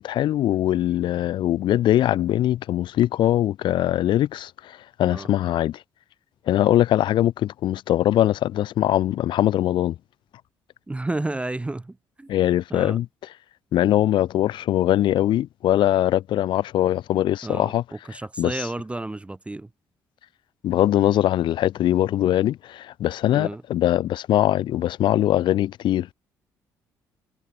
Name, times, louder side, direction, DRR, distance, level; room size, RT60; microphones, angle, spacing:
voice 1, 0.0-5.8 6.5-10.0 12.3-13.1 13.7-17.8 18.4-18.6 20.6-26.1, left 12 dB, 60° left, 0.4 m, -22 dB
voice 2, 10.9-12.3 12.7-13.0 17.4-19.7 23.2-23.6, right 2 dB, 15° right, 0.4 m, -32 dB
hypercardioid pair, 55°, 9 cm